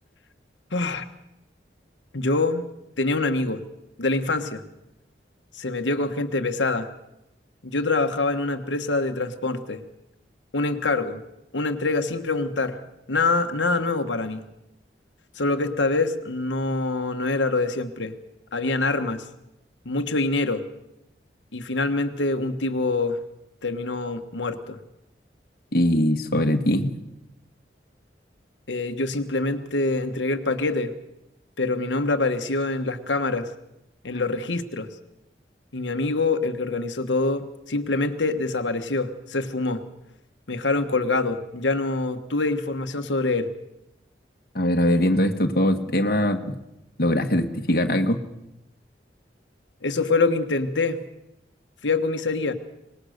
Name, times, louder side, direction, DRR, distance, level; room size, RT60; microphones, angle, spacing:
voice 1, 0.7-1.0 2.1-2.7 3.0-3.6 4.0-4.6 5.5-6.9 7.6-9.8 10.5-11.2 11.5-12.8 13.1-14.4 15.3-18.1 18.5-19.2 19.8-20.6 21.5-23.2 23.6-24.8 28.7-31.0 31.6-33.5 34.0-34.9 35.7-39.8 40.5-43.5 49.8-51.0 51.8-52.5, left 3 dB, 85° left, 7 dB, 1.4 m, -25 dB
voice 2, 25.7-26.9 44.5-46.6 47.0-48.2, left 1 dB, 55° left, 5 dB, 1.5 m, -21 dB
25.0 x 20.0 x 6.6 m, 0.87 s
head